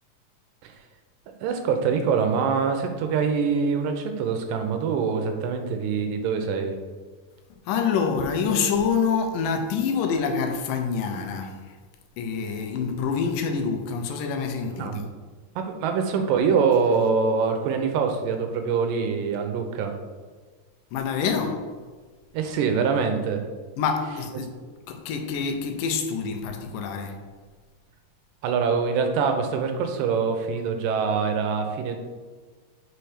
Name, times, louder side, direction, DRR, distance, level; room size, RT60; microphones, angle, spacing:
voice 1, 1.4-6.7 14.7-15.0 15.6-19.9 22.3-23.4 28.4-32.0, right 5 dB, 85° right, 2.3 m, -24 dB
voice 2, 7.7-11.6 12.2-15.1 20.9-21.7 23.8-24.5 24.9-27.2, left 6 dB, 80° left, 2.3 m, -26 dB
5.7 x 4.5 x 4.9 m
omnidirectional pair, 3.9 m